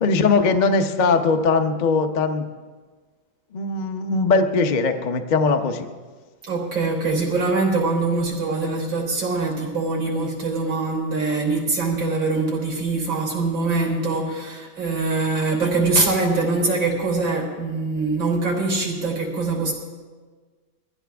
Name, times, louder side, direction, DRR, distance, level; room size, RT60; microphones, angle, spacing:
voice 1, 0.0-2.5 3.5-5.9, left 4 dB, 85° left, 6 dB, 0.4 m, -20 dB
voice 2, 6.4-19.7, right 3 dB, 70° right, 0 dB, 4.4 m, -23 dB
22.0 x 15.5 x 3.5 m, 1.4 s
omnidirectional pair, 2.2 m